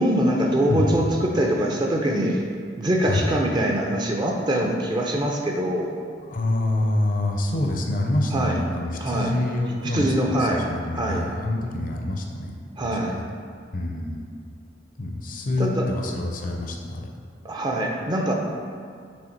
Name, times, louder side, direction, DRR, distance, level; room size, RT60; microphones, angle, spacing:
voice 1, 0.0-2.4 2.8-5.9 8.3-8.6 9.0-9.3 9.9-10.6 10.9-11.2 12.8-13.2 15.6-15.8 17.4-18.3, right 1 dB, 25° right, 0 dB, 0.5 m, -23 dB
voice 2, 0.7-1.1 3.0-3.3 6.2-12.5 12.8-13.3 13.7-14.2 15.0-17.1, left 1 dB, 45° left, 1 dB, 0.6 m, -26 dB
6.3 x 3.4 x 4.5 m, 2.2 s
head